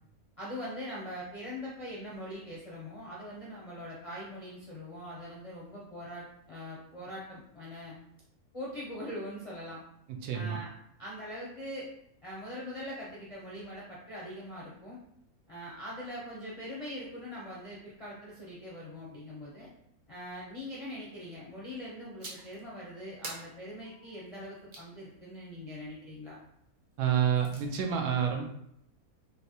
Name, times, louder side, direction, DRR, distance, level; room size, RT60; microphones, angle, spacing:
voice 1, 0.4-7.9 8.5-9.8 10.3-10.7 11.0-11.9 12.2-15.0 15.5-19.7 20.1-26.4, equal, 45° left, -7 dB, 0.4 m, -42 dB
voice 2, 10.1-10.6 27.0-28.5, right 8 dB, 85° right, 3 dB, 1.1 m, -28 dB
sound 1, 22.2-22.6 23.2-24.9 27.0-27.7, right 2 dB, 55° right, 0.5 m, -46 dB
3.3 x 2.7 x 2.7 m, 0.73 s
omnidirectional pair, 1.5 m